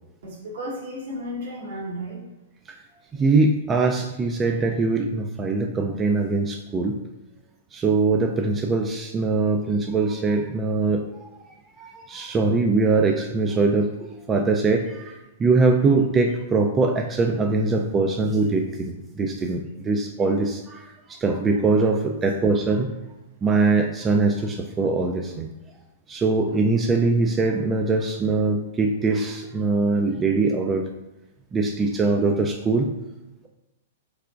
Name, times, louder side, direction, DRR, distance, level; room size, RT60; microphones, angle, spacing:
voice 1, 0.2-2.2, equal, 70° right, -2 dB, 1.1 m, -33 dB
voice 2, 3.1-7.0 7.7-11.3 11.8-13.9 14.3-22.9 23.4-25.5 26.1-30.8 31.5-32.9, right 3 dB, 20° right, 3 dB, 0.3 m, -22 dB
3.6 x 3.3 x 2.4 m, 0.96 s
hypercardioid pair, 120°, 0 cm